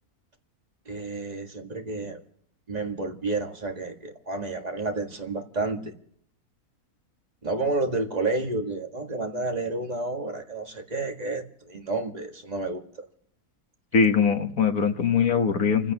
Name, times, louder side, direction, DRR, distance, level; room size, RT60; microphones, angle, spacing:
voice 1, 0.9-2.2 2.7-5.9 7.4-13.1, right 3 dB, 25° right, 3 dB, 1.9 m, -30 dB
voice 2, 13.9-15.9, left 6 dB, 70° left, 5 dB, 1.9 m, -22 dB
29.5 x 16.0 x 3.0 m, 0.66 s
omnidirectional pair, 1.6 m